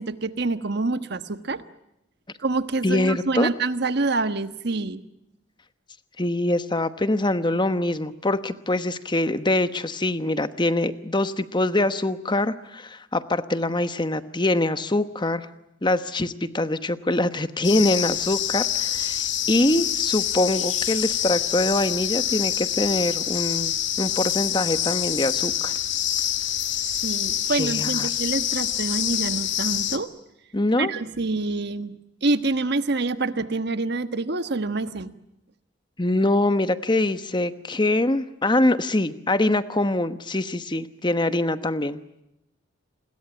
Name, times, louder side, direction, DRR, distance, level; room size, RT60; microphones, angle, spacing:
voice 1, 0.0-1.6 2.4-5.0 26.9-30.1 30.8-35.1, right 3 dB, 55° right, 11 dB, 1.3 m, -26 dB
voice 2, 2.8-3.5 6.2-15.5 15.8-25.7 27.5-28.1 30.5-30.9 36.0-42.0, left 2 dB, 25° left, 12 dB, 1.1 m, -24 dB
sound 1, 17.6-30.0, left 11 dB, 65° left, 1.9 m, -26 dB
28.5 x 21.5 x 8.9 m, 0.85 s
head